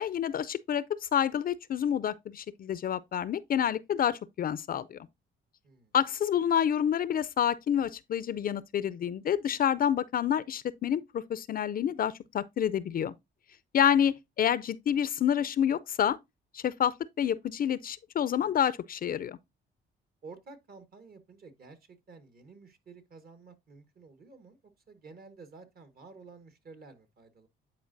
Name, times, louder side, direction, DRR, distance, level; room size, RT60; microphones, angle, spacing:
voice 1, 0.0-5.0 5.9-13.1 13.7-16.2 16.5-19.4, left 9 dB, 45° left, 0.4 m, -28 dB
voice 2, 5.6-5.9 13.9-14.0 20.2-24.6 24.9-27.5, right 4 dB, 50° right, 1.3 m, -51 dB
9.4 x 4.4 x 2.6 m
cardioid pair, 90°, 20 cm